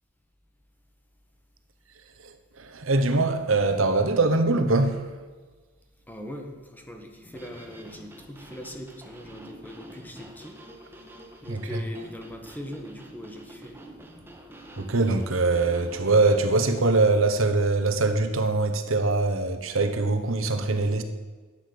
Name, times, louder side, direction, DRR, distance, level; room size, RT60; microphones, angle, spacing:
voice 1, 2.6-5.1 11.5-11.8 14.8-21.0, right 3 dB, 75° right, 1.2 m, -23 dB
voice 2, 6.1-10.6 11.4-13.8, left 1 dB, 10° left, 1.5 m, -41 dB
sound 1, 7.2-17.1, right 1 dB, 10° right, 1.5 m, -47 dB
12.0 x 8.7 x 6.8 m
head